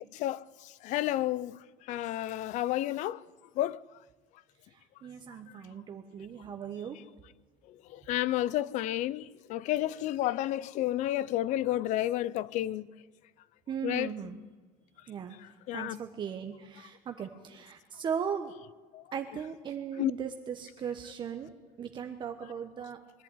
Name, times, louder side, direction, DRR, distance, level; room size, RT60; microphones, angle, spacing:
voice 1, 0.1-3.2 3.6-3.8 7.9-12.9 13.8-14.1 15.7-16.0 18.9-19.0 20.0-20.1, left 14 dB, 55° left, 0.6 m, -31 dB
voice 2, 4.7-7.0 13.7-14.4 15.1-15.4 15.7-18.5 19.1-21.5 21.8-23.0, right 7 dB, 30° right, 1.2 m, -38 dB
23.0 x 11.5 x 9.7 m
cardioid pair, 155°, 15 cm